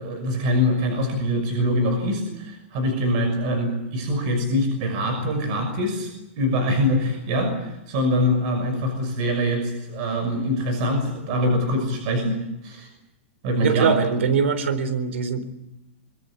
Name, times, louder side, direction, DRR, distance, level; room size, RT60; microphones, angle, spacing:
voice 1, 0.0-12.9 13.4-13.9, left 1 dB, 35° right, 5 dB, 6.2 m, -24 dB
voice 2, 13.6-15.4, right 6 dB, 75° right, 14 dB, 3.9 m, -22 dB
24.0 x 22.5 x 8.6 m, 0.91 s
supercardioid pair, 175°, 7 cm